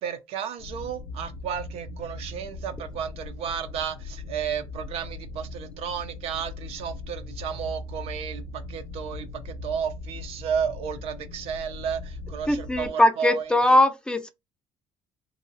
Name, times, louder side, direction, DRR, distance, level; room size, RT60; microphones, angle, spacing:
voice 1, 0.0-13.8, right 7 dB, 75° right, 0.6 m, -33 dB
sound 1, 0.6-12.9, left 2 dB, 85° left, 0.4 m, -39 dB
voice 2, 12.5-14.3, left 1 dB, 10° left, 0.5 m, -20 dB
3.0 x 2.8 x 2.7 m
cardioid pair, 100°, 10 cm